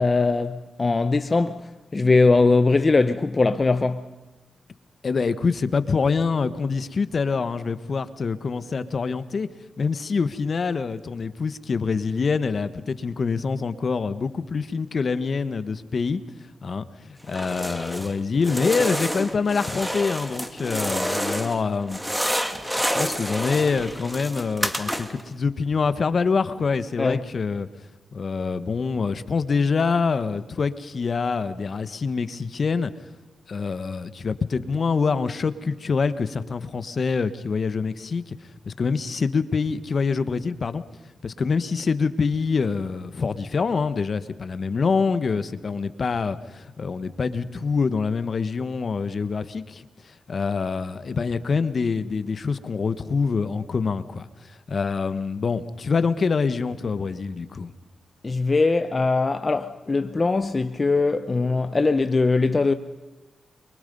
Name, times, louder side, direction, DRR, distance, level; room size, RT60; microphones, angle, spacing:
voice 1, 0.0-4.1 27.0-27.2 58.2-62.7, left 3 dB, 40° left, 0.9 m, -21 dB
voice 2, 5.0-9.5 9.8-16.2 16.6-22.5 22.8-27.7 28.1-32.9 33.5-38.3 38.6-40.8 41.2-57.7, left 5 dB, 55° left, 1.3 m, -25 dB
sound 1, 17.3-18.1 18.4-21.6 21.9-25.3, equal, 5° right, 2.5 m, -28 dB
29.0 x 24.0 x 5.5 m
cardioid pair, 60°, 0 cm